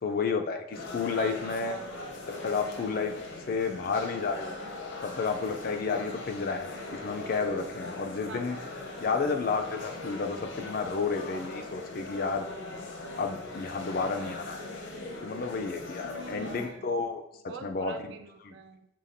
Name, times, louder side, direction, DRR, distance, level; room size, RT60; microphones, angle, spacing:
voice 1, 0.0-1.8 2.2-3.1 3.5-4.6 5.0-8.6 9.0-12.5 13.2-14.7 15.2-18.1 18.4-18.6, left 4 dB, 50° left, 6 dB, 0.4 m, -31 dB
sound 1, 0.7-16.7, left 2 dB, 75° left, 0.8 m, -40 dB
voice 2, 1.2-2.1 8.2-8.7 16.0-16.9 17.5-18.9, right 5 dB, 65° right, 6 dB, 0.4 m, -45 dB
5.7 x 3.6 x 2.5 m, 0.84 s
head